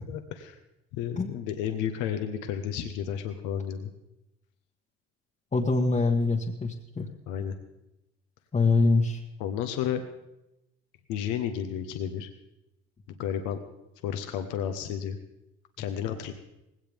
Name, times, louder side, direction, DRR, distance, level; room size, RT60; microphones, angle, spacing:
voice 1, 0.1-0.6 0.9-3.9 7.3-7.5 9.4-10.0 11.1-12.3 13.2-13.6 14.0-15.2 15.8-16.3, left 9 dB, 75° left, 7 dB, 1.2 m, -32 dB
voice 2, 5.5-7.1 8.5-9.2, left 3 dB, 25° left, -1 dB, 1.4 m, -24 dB
19.0 x 17.0 x 3.6 m, 0.93 s
supercardioid pair, 80°, 31 cm